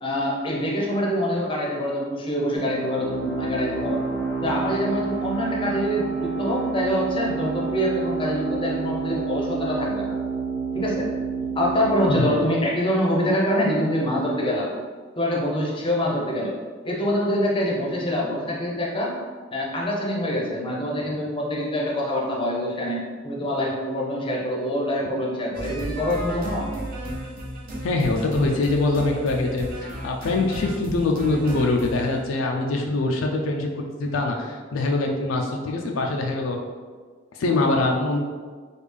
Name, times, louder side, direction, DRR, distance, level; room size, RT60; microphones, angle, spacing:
voice 1, 0.0-4.0 4.4-10.1 10.7-11.1 11.5-14.7 15.2-16.5 16.8-19.2 19.5-26.7, equal, 25° left, -3 dB, 0.6 m, -25 dB
sound 1, 2.5-13.9, right 5 dB, 70° right, 1.2 m, -29 dB
sound 2, 25.5-32.1, right 1 dB, 50° right, 0.7 m, -34 dB
voice 2, 27.8-29.7 30.0-36.6 37.3-38.2, left 2 dB, 80° left, 1 dB, 0.4 m, -23 dB
3.4 x 2.3 x 3.3 m, 1.5 s
head